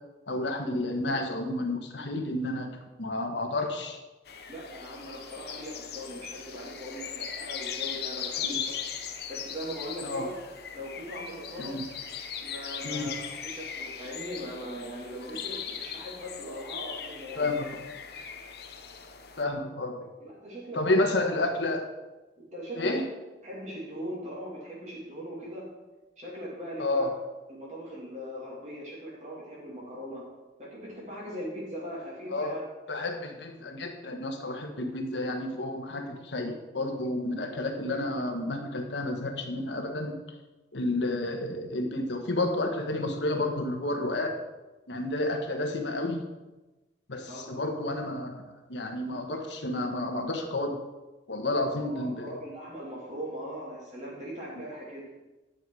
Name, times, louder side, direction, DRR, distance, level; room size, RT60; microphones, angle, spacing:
voice 1, 0.3-2.7 3.0-4.0 8.4-8.6 10.0-10.3 11.6-11.9 12.8-13.1 17.4-17.8 19.4-20.1 20.7-21.9 22.8-23.0 26.8-27.1 32.3-32.6 32.9-40.2 40.7-44.4 44.9-46.2 47.1-48.4 48.7-50.8 51.3-52.4, left 2 dB, 80° left, 4 dB, 1.3 m, -30 dB
sound 1, 4.3-19.4, left 7 dB, 60° left, 0.8 m, -39 dB
voice 2, 4.5-8.6 9.0-10.3 10.7-11.8 12.4-13.1 13.4-17.7 20.2-21.0 22.5-23.0 23.4-25.7 26.2-27.1 27.5-30.3 30.6-32.6 47.3-47.6 51.5-55.1, equal, 40° right, -5 dB, 2.6 m, -40 dB
10.0 x 6.7 x 4.7 m, 1.1 s
head